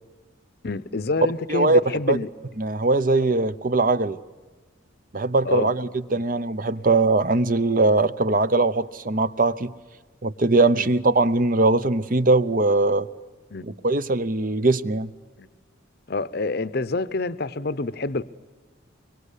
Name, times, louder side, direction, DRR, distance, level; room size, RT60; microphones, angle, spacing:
voice 1, 0.6-2.3 5.4-5.7 10.7-10.9 13.5-13.6 15.4-15.5 16.1-18.2, left 3 dB, 50° left, 0.7 m, -27 dB
voice 2, 1.5-1.8 2.1-2.2 2.6-4.2 5.1-9.7 10.2-13.1 13.6-15.1, right 2 dB, 45° right, 0.8 m, -21 dB
24.5 x 23.5 x 8.3 m
head